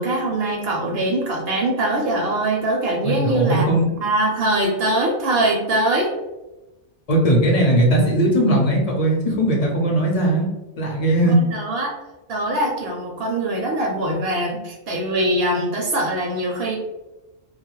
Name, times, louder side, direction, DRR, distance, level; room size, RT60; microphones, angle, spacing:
voice 1, 0.0-6.1 11.3-11.9 12.3-16.8, right 1 dB, 65° right, 0 dB, 0.8 m, -22 dB
voice 2, 3.0-3.8 7.1-10.5 10.8-11.4, right 1 dB, 40° left, -1 dB, 0.7 m, -18 dB
2.7 x 2.3 x 3.0 m, 1.0 s
omnidirectional pair, 1.2 m